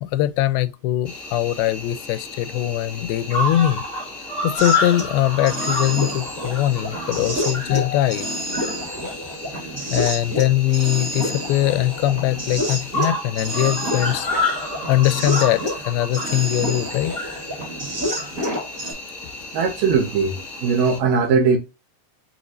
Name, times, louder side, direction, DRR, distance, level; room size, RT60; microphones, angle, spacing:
voice 1, 0.0-3.8 4.4-8.3 9.0-9.1 9.9-14.3 14.9-17.2, left 14 dB, 90° left, 2.5 m, -21 dB
Cricket, 1.1-21.0, left 2 dB, 50° left, 0.8 m, -30 dB
sound 1, 4.6-5.0 5.4-15.8 16.1-18.9, equal, 40° right, 1.3 m, -29 dB
voice 2, 19.5-21.6, right 5 dB, 65° right, 1.8 m, -20 dB
6.1 x 3.0 x 2.5 m
omnidirectional pair, 4.3 m